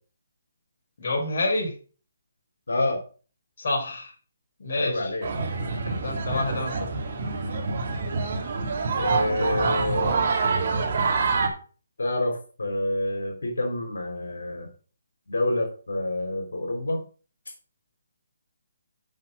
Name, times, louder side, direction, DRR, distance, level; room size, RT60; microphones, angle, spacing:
voice 1, 1.0-1.8 3.6-4.1 4.6-5.1 5.9-6.9, left 2 dB, 55° left, 0 dB, 3.7 m, -28 dB
voice 2, 2.7-3.0 4.7-5.3 6.3-6.4 9.0-10.3 12.0-14.7 15.3-17.0, left 2 dB, 85° left, 1 dB, 3.5 m, -28 dB
sound 1, 5.2-11.5, right 4 dB, 50° right, 2.4 m, -26 dB
7.5 x 6.0 x 6.7 m, 0.38 s
hypercardioid pair, 155°, 0 cm